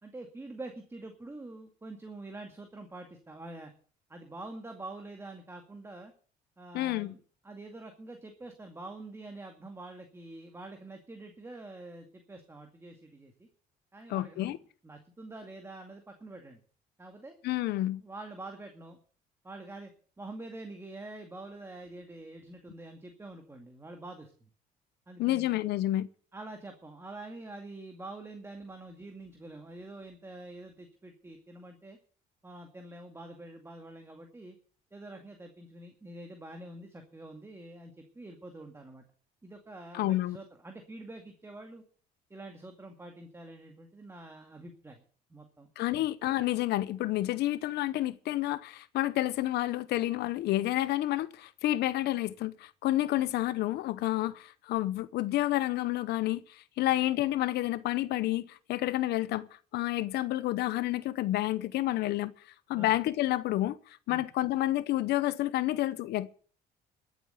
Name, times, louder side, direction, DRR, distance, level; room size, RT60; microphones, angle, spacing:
voice 1, 0.0-3.7 4.1-6.1 6.6-7.2 7.4-13.5 13.9-14.6 14.8-16.6 17.0-17.3 18.0-19.0 19.4-19.9 20.2-24.3 25.1-25.6 26.3-32.0 32.4-34.6 34.9-39.0 39.4-41.8 42.3-45.0 45.3-46.1 56.8-56.9 62.7-63.0 64.1-64.2, right 2 dB, 15° right, 2.2 m, -46 dB
voice 2, 6.7-7.1 14.1-14.6 17.4-18.0 25.2-26.1 39.9-40.4 45.8-59.5 59.7-62.3 62.7-66.3, left 15 dB, 80° left, 0.8 m, -29 dB
13.5 x 8.1 x 8.1 m
cardioid pair, 110°, 17 cm